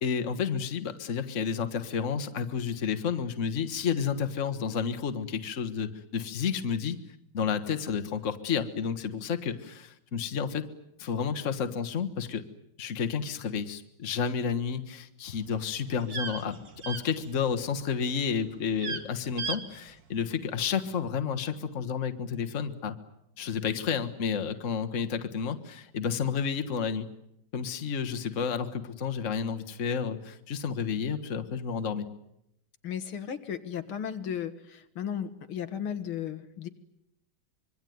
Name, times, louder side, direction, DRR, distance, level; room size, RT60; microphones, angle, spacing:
voice 1, 0.0-7.0 7.3-10.7 11.0-12.4 12.8-16.6 16.9-23.0 23.4-27.1 27.5-32.1, left 6 dB, 40° left, 7 dB, 1.7 m, -31 dB
sound 1, 15.3-17.7 18.0-18.4 18.7-19.0 19.4-19.6 19.9-20.0, right 5 dB, 45° right, 2.1 m, -36 dB
voice 2, 32.8-36.7, left 8 dB, 80° left, 10 dB, 2.3 m, -35 dB
25.5 x 23.0 x 9.4 m, 0.80 s
omnidirectional pair, 2.3 m